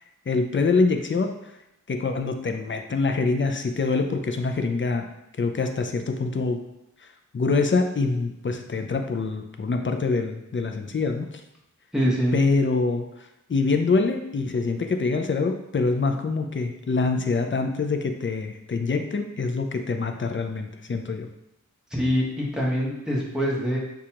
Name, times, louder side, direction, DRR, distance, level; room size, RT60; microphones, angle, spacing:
voice 1, 0.3-1.3 1.9-5.1 5.4-6.6 7.3-11.4 12.3-21.3, left 4 dB, 40° left, 5 dB, 0.5 m, -25 dB
voice 2, 11.9-12.4 21.9-23.8, equal, ahead, -5 dB, 1.3 m, -24 dB
6.3 x 2.4 x 2.9 m, 0.88 s
wide cardioid pair, 55°, 32 cm